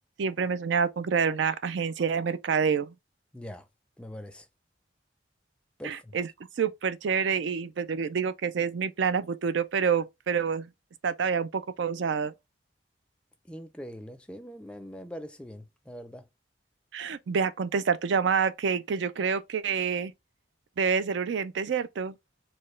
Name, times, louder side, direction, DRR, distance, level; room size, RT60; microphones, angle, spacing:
voice 1, 0.2-2.9 5.8-6.3 6.6-10.7 11.0-12.3 16.9-20.1 20.8-22.2, right 6 dB, 75° right, 0.4 m, -27 dB
voice 2, 3.3-3.7 4.0-4.5 5.8-6.2 13.5-16.3, equal, 5° left, 0.4 m, -42 dB
4.3 x 2.2 x 3.2 m
head